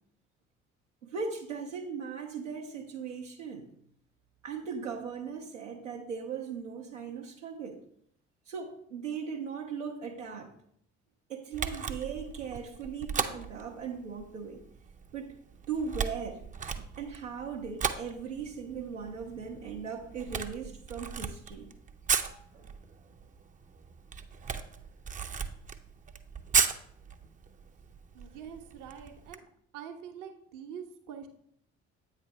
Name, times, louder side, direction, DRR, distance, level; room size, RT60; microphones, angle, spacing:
voice 1, 1.0-3.7 4.4-7.8 8.5-10.5 11.3-14.6 15.1-15.4 15.7-16.4 17.0-21.7 22.2-22.7 25.3-25.4, right 6 dB, 85° right, -2 dB, 0.7 m, -38 dB
Camera, 11.5-29.4, right 6 dB, 20° right, 0.5 m, -36 dB
voice 2, 28.1-29.5 29.7-31.3, right 8 dB, 60° right, 7 dB, 0.9 m, -45 dB
8.4 x 3.3 x 5.8 m, 0.67 s
figure-of-eight pair, 50°, 36 cm